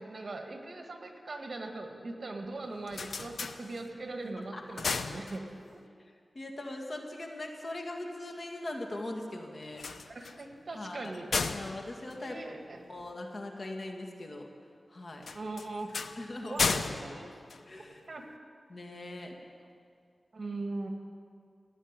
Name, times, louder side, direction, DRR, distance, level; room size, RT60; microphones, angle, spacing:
voice 1, 0.0-5.4 5.7-5.8 10.1-11.3 12.2-12.8 15.3-15.9 16.4-17.3 18.1-18.3 20.3-20.9, right 2 dB, 60° right, 4 dB, 1.9 m, -40 dB
sound 1, 2.6-4.2 4.5-5.9 9.6-13.1 15.2-18.2, left 4 dB, 90° left, 0.7 m, -35 dB
voice 2, 6.3-9.8 10.7-11.1 11.5-14.5 14.9-15.2 16.2-16.7 17.0-17.3 17.7-18.0 18.7-19.4, left 1 dB, 55° left, 2 dB, 2.0 m, -41 dB
16.0 x 9.1 x 9.7 m, 2.2 s
wide cardioid pair, 70°, 0 cm